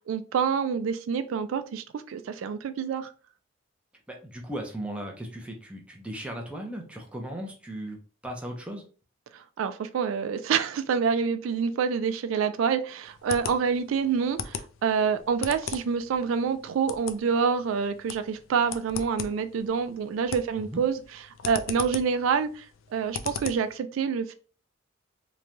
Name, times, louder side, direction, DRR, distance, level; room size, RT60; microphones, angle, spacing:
voice 1, 0.1-3.1 9.3-21.0 21.4-22.6 22.9-24.4, right 6 dB, 90° right, 10 dB, 0.3 m, -27 dB
voice 2, 4.1-8.8 20.5-20.8, right 1 dB, 5° right, 0 dB, 0.5 m, -37 dB
sound 1, 13.1-23.8, left 7 dB, 80° left, 0.3 m, -39 dB
3.0 x 2.2 x 2.5 m, 0.37 s
head